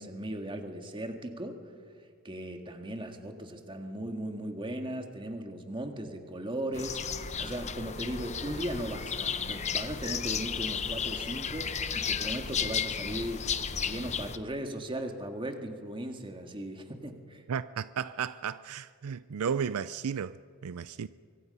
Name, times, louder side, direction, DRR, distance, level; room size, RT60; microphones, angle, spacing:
voice 1, 0.0-1.6 2.2-7.0 7.4-13.5 13.8-17.4, right 1 dB, 20° right, 1.9 m, -37 dB
sound 1, 6.7-14.4, left 7 dB, 30° left, 0.8 m, -33 dB
voice 2, 17.5-20.4 20.6-21.1, right 7 dB, 80° right, 0.4 m, -33 dB
24.5 x 24.0 x 5.5 m
head